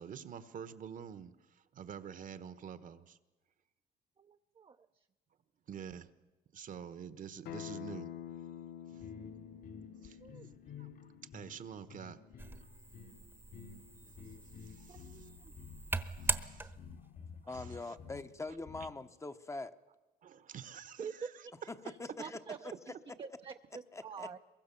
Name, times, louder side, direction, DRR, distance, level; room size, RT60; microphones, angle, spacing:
voice 1, 0.0-3.2 5.7-6.1 6.5-8.1 8.9-9.0 10.0-10.2 10.8-10.9 11.3-12.2 14.6-15.2 16.0-16.7 17.4-18.0 20.2-21.3, right 8 dB, 55° right, 1.3 m, -48 dB
voice 2, 4.2-5.1 10.2-10.5 14.9-15.5 21.0-21.5 21.8-24.4, right 6 dB, 30° right, 0.7 m, -47 dB
Acoustic guitar, 7.5-12.7, left 10 dB, 80° left, 1.0 m, -49 dB
sound 1, 8.9-19.0, left 6 dB, 60° left, 2.7 m, -52 dB
sound 2, 12.4-17.1, right 2 dB, 15° right, 1.1 m, -41 dB
voice 3, 17.5-19.7 21.8-22.4 23.9-24.3, left 3 dB, 15° left, 0.9 m, -43 dB
23.0 x 22.0 x 7.1 m
cardioid pair, 110°, 17 cm